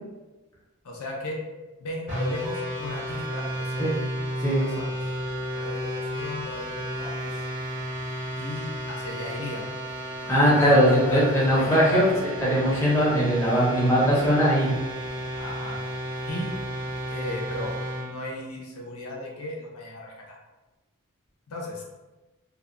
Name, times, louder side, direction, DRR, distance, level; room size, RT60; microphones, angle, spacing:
voice 1, 0.8-1.4 1.8-3.9 4.5-4.9 5.5-7.3 8.4-9.7 10.2-12.1 15.4-15.8 16.3-16.5 17.1-20.4 21.5-21.8, left 2 dB, 80° left, -2 dB, 0.5 m, -36 dB
sound 1, 2.1-18.1, right 1 dB, 50° right, 0.6 m, -33 dB
voice 2, 10.3-12.1 12.4-14.7, equal, 10° left, -7 dB, 0.6 m, -20 dB
2.6 x 2.1 x 2.5 m, 1.1 s
head